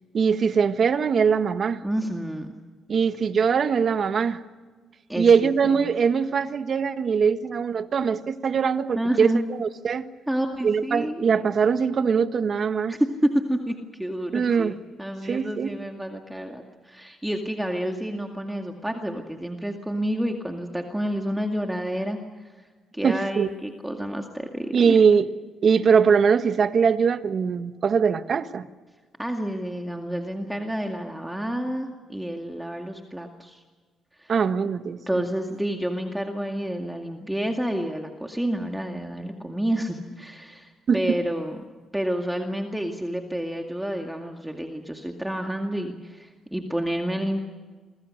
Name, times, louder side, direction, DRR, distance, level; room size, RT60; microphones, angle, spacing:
voice 1, 0.1-1.8 2.9-4.4 5.1-10.0 10.6-12.9 14.3-14.7 15.2-15.7 23.0-23.5 24.7-25.3 25.6-28.7 34.3-35.2 40.9-41.2, right 6 dB, 50° right, 10 dB, 1.4 m, -22 dB
voice 2, 1.8-2.5 5.1-5.8 8.9-9.5 10.3-11.3 12.9-22.2 22.4-22.7 22.9-25.0 29.2-33.6 34.2-34.3 35.1-41.6 41.9-47.4, right 1 dB, 5° right, 3 dB, 2.2 m, -29 dB
27.5 x 24.5 x 6.6 m, 1.4 s
cardioid pair, 90°, 0 cm